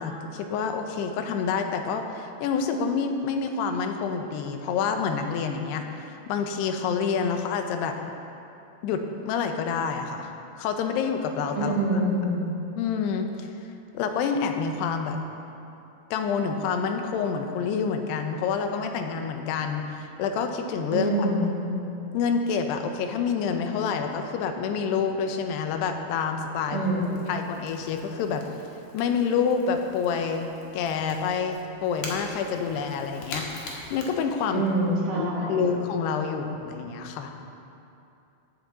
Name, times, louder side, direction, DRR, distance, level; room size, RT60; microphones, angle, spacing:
voice 1, 0.0-5.9 6.3-8.0 8.8-10.3 10.6-11.7 12.8-13.5 13.9-15.2 16.1-21.3 22.1-26.8 27.3-28.4 28.9-34.6 35.1-37.3, left 6 dB, 85° left, 5 dB, 2.8 m, -28 dB
voice 2, 11.5-12.5 20.9-21.8 26.7-27.4 34.5-35.7, right 1 dB, 60° right, -4 dB, 2.9 m, -26 dB
Crackle / Crack, 25.4-34.9, left 2 dB, 55° left, 2.1 m, -44 dB
14.5 x 9.4 x 3.9 m, 2.7 s
omnidirectional pair, 4.7 m